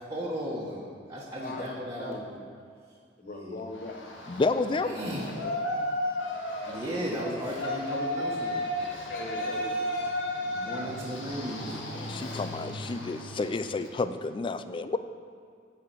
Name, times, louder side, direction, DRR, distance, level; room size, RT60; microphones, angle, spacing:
voice 1, 0.1-0.8 1.1-2.4 3.2-3.6 4.8-5.3 6.6-8.6 9.4-9.5 10.5-11.7, equal, 15° right, -8 dB, 1.4 m, -35 dB
voice 2, 1.4-2.3 3.2-4.0 5.2-5.6 9.1-10.0, left 2 dB, 50° left, 3 dB, 1.0 m, -40 dB
Yell, 3.7-14.0, left 1 dB, 90° left, 1.5 m, -34 dB
voice 3, 4.3-5.0 11.9-15.0, left 3 dB, 25° left, 11 dB, 0.4 m, -30 dB
10.5 x 4.9 x 8.1 m, 2.3 s
head